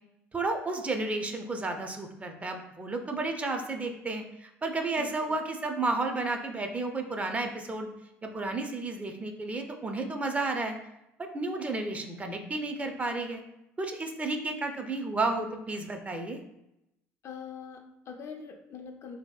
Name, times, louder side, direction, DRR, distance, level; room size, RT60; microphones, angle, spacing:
voice 1, 0.3-7.9 8.2-10.8 11.2-13.4 13.8-16.4, right 2 dB, 20° right, 5 dB, 0.5 m, -32 dB
voice 2, 5.0-5.3 17.2-19.2, left 6 dB, 50° left, 4 dB, 0.4 m, -43 dB
2.9 x 2.6 x 2.3 m, 0.86 s
hypercardioid pair, 70°, 6 cm